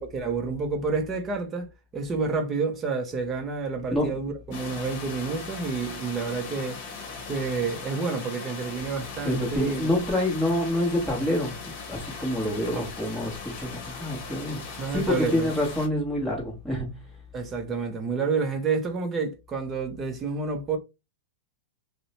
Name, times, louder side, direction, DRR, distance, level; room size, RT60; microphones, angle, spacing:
voice 1, 0.1-6.8 7.3-9.9 12.7-12.9 14.8-15.5 17.3-20.8, right 4 dB, 20° right, 0.6 m, -29 dB
sound 1, 4.5-15.9, left 4 dB, 45° left, 0.9 m, -39 dB
voice 2, 9.2-11.6 11.9-14.6 14.9-17.0, left 1 dB, ahead, 1.1 m, -27 dB
2.6 x 2.1 x 2.8 m
supercardioid pair, 145°, 0 cm